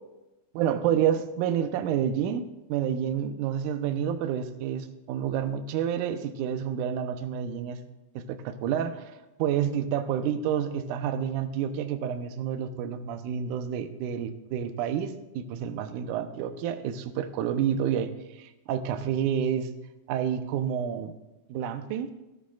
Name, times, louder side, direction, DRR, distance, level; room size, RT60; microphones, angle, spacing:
voice 1, 0.5-2.4 2.7-7.8 8.2-9.1 9.4-19.7 20.1-21.1 21.5-22.1, right 9 dB, 80° right, 8 dB, 1.8 m, -29 dB
19.5 x 13.0 x 2.4 m, 1.0 s
omnidirectional pair, 4.6 m